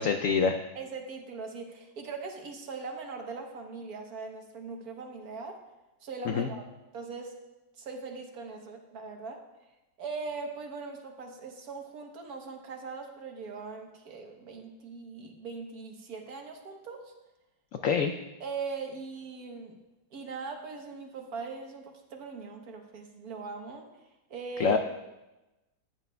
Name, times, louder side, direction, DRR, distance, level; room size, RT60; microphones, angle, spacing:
voice 1, 0.0-0.6 6.3-6.5 17.8-18.1 24.6-24.8, left 6 dB, 85° left, 6 dB, 0.7 m, -25 dB
voice 2, 0.7-5.6 6.0-6.7 6.9-7.3 7.8-9.4 10.0-17.1 18.4-19.8 20.1-23.9 24.3-24.8, right 4 dB, 60° right, 3 dB, 1.4 m, -40 dB
14.0 x 9.2 x 2.2 m, 1.0 s
omnidirectional pair, 1.9 m